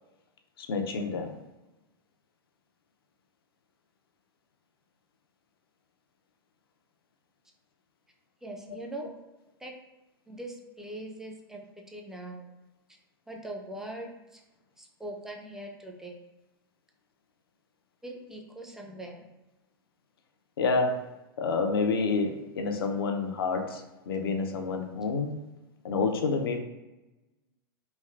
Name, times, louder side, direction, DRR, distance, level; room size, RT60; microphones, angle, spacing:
voice 1, 0.6-1.3 20.6-21.0 21.4-25.3 25.8-26.6, left 4 dB, 75° left, 4 dB, 0.5 m, -28 dB
voice 2, 8.4-9.1 9.6-9.7 10.3-12.5 13.3-14.4 14.8-16.2 18.0-19.3, right 1 dB, 5° right, 1 dB, 0.4 m, -41 dB
3.2 x 2.4 x 2.4 m, 1.0 s
hypercardioid pair, 100°, 12 cm